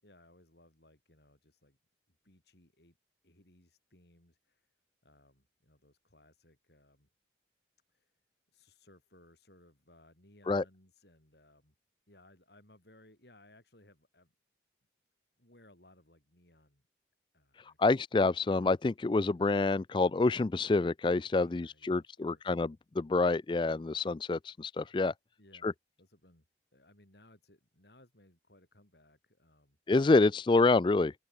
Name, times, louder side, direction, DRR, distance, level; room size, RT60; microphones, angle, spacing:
voice 1, 0.0-1.8 2.2-3.0 3.2-4.7 5.0-7.1 7.9-8.1 8.5-11.7 12.1-14.3 15.4-16.8 17.3-18.0 21.4-22.6 25.4-26.5 26.7-29.8, left 1 dB, 70° left, 7.3 m, -63 dB
voice 2, 17.8-25.1 25.6-25.7 29.9-31.1, left 3 dB, 25° left, 0.3 m, -27 dB
open air
head